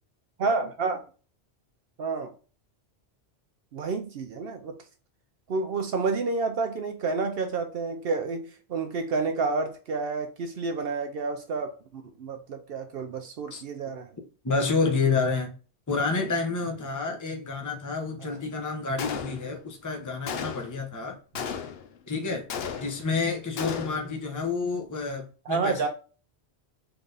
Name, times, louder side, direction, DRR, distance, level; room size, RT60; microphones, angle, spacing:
voice 1, 0.4-1.0 2.0-2.3 3.7-4.8 5.5-14.1 18.2-18.4 25.5-25.9, right 4 dB, 65° right, 0.8 m, -29 dB
voice 2, 14.4-15.5 15.9-21.2 22.1-22.5 22.8-25.8, left 4 dB, 20° left, 0.8 m, -29 dB
Gunshot gunfire, 19.0-19.7 20.3-20.8 21.3-22.0 22.5-23.2 23.6-24.1, left 7 dB, 65° left, 0.8 m, -35 dB
3.8 x 3.5 x 3.9 m
omnidirectional pair, 1.1 m